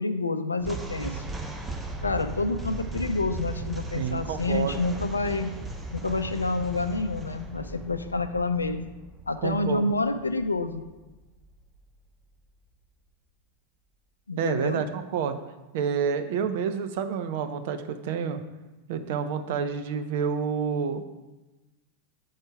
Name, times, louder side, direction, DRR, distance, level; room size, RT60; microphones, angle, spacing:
voice 1, 0.0-1.3 2.0-5.5 5.9-8.9 9.3-10.8 14.3-14.8, left 3 dB, 80° left, 10 dB, 0.4 m, -28 dB
sound 1, 0.6-11.9, right 2 dB, 10° right, 0.8 m, -37 dB
voice 2, 4.0-4.8 9.4-9.9 14.4-15.4 15.7-18.4 18.9-21.0, right 7 dB, 50° right, 9 dB, 0.5 m, -28 dB
6.4 x 4.4 x 4.8 m, 1.1 s
figure-of-eight pair, 90°, 0 cm